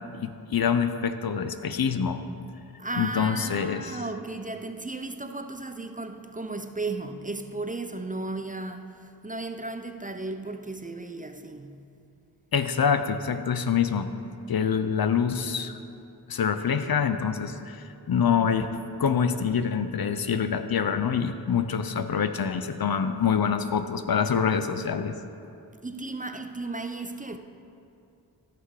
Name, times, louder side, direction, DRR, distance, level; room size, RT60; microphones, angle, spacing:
voice 1, 0.2-2.2 3.0-4.0 12.5-14.1 14.5-15.7 16.3-25.1, left 7 dB, 60° left, 0.6 m, -26 dB
voice 2, 2.8-11.9 25.8-27.4, right 2 dB, 20° right, 0.6 m, -35 dB
14.5 x 6.0 x 4.8 m
cardioid pair, 50°, 41 cm